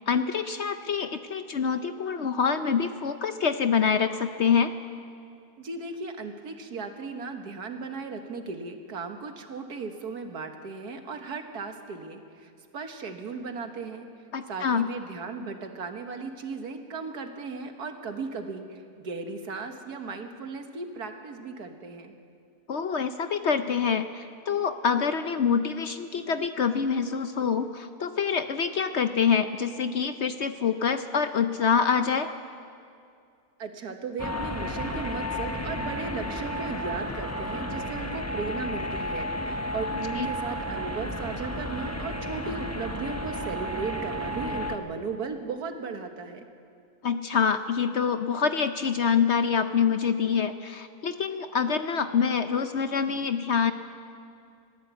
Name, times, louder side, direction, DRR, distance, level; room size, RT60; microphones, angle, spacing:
voice 1, 0.1-4.7 14.3-14.9 22.7-32.3 40.2-40.3 47.0-53.7, left 6 dB, 55° left, 9 dB, 0.8 m, -26 dB
voice 2, 5.6-14.1 14.5-22.1 33.6-46.4, right 4 dB, 75° right, 6 dB, 2.0 m, -36 dB
sound 1, 34.2-44.8, equal, 15° left, 0.8 m, -32 dB
21.5 x 15.5 x 8.3 m, 2.4 s
omnidirectional pair, 1.7 m